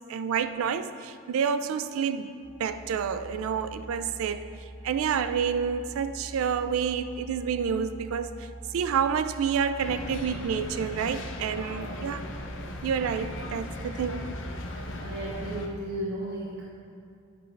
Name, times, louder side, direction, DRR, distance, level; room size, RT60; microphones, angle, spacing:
voice 1, 0.1-2.3 2.6-4.5 4.8-8.5 8.7-12.3 12.8-14.2, right 7 dB, 75° right, 11 dB, 0.3 m, -29 dB
sound 1, 2.4-15.5, right 1 dB, 15° right, 1.7 m, -43 dB
sound 2, 9.8-15.7, left 2 dB, 65° left, 0.7 m, -38 dB
voice 2, 14.7-16.6, right 1 dB, 55° right, -5 dB, 0.8 m, -35 dB
9.1 x 5.3 x 3.2 m, 2.5 s
head